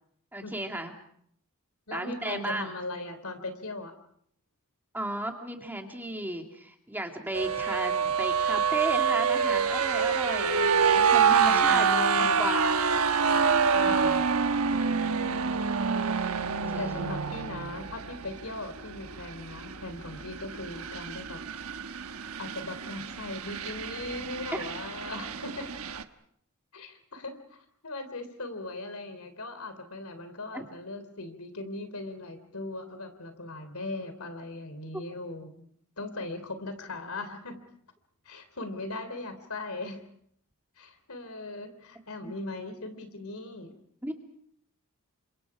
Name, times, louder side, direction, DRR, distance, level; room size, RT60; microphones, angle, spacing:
voice 1, 0.3-0.9 1.9-2.7 4.9-11.9 12.2-13.1 13.7-14.1 16.7-17.0 30.5-30.6 42.2-42.3 44.0-44.1, right 1 dB, 10° right, 3 dB, 2.3 m, -34 dB
voice 2, 1.9-3.9 11.5-12.5 13.9-14.3 14.7-15.6 16.8-21.4 22.4-25.7 26.7-35.7 36.0-37.5 38.3-40.0 40.8-43.8, left 2 dB, 75° left, 9 dB, 3.5 m, -39 dB
sound 1, 7.3-26.0, right 6 dB, 75° right, 1.2 m, -27 dB
30.0 x 26.0 x 4.9 m, 0.66 s
head